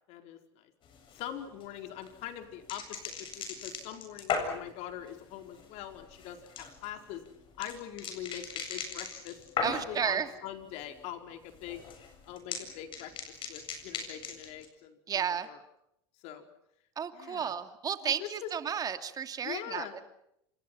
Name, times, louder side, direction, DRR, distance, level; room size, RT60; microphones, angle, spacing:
voice 1, 0.1-0.7 1.1-7.2 7.6-11.9 12.3-15.6 16.2-16.5 17.1-17.6 18.0-18.5 19.4-20.1, left 11 dB, 60° left, 7 dB, 4.7 m, -43 dB
sound 1, 0.8-10.1 10.4-11.0 11.3-14.7, left 6 dB, 40° left, 7.7 m, -39 dB
voice 2, 9.6-10.3 15.1-15.5 17.0-19.9, right 8 dB, 30° right, 9 dB, 2.7 m, -32 dB
29.5 x 26.5 x 5.8 m, 0.77 s
supercardioid pair, 120°, 13 cm